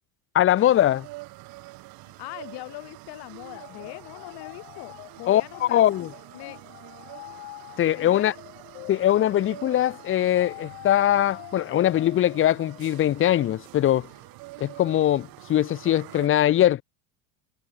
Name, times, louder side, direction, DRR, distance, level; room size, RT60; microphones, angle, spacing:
voice 1, 0.3-1.1 5.3-6.1 7.8-8.3 8.9-14.1 14.6-16.8, left 12 dB, 25° left, 0.7 m, -21 dB
sound 1, 0.6-16.3, right 21 dB, 50° right, 1.2 m, -46 dB
voice 2, 2.0-6.0 6.3-6.6 7.9-8.4, left 25 dB, 55° left, 2.6 m, -41 dB
sound 2, 3.5-13.3, left 23 dB, 70° left, 2.7 m, -45 dB
supercardioid pair, 105°, 46 cm